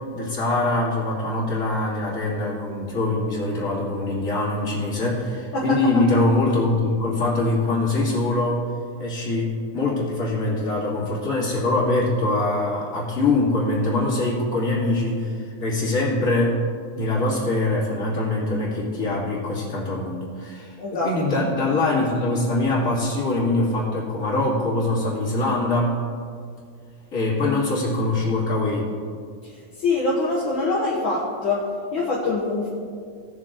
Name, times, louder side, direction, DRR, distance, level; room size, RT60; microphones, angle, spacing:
voice 1, 0.0-8.6 9.0-16.6 16.9-26.0 27.1-28.9, left 2 dB, 25° left, -6 dB, 2.9 m, -23 dB
voice 2, 20.8-21.1 29.8-31.6 31.9-32.7, left 3 dB, 50° left, -6 dB, 1.7 m, -23 dB
18.0 x 6.7 x 3.8 m, 2.2 s
omnidirectional pair, 3.6 m